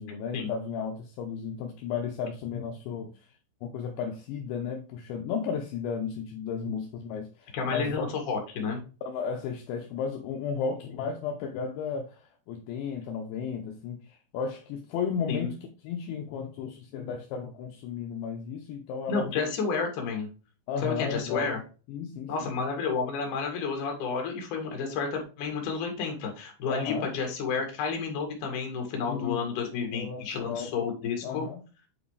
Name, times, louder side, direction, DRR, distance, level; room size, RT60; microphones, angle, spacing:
voice 1, 0.0-3.1 3.6-8.0 9.1-15.5 15.8-19.3 20.7-21.5 21.9-22.5 26.7-27.1 29.1-29.5 29.9-30.2 30.5-30.7 31.2-31.6, left 6 dB, 75° left, 3 dB, 2.9 m, -34 dB
voice 2, 7.5-8.8 15.3-15.5 19.1-20.3 20.8-21.6 22.3-31.5, left 5 dB, 50° left, 2 dB, 2.9 m, -31 dB
8.4 x 4.9 x 3.2 m, 0.34 s
omnidirectional pair, 5.7 m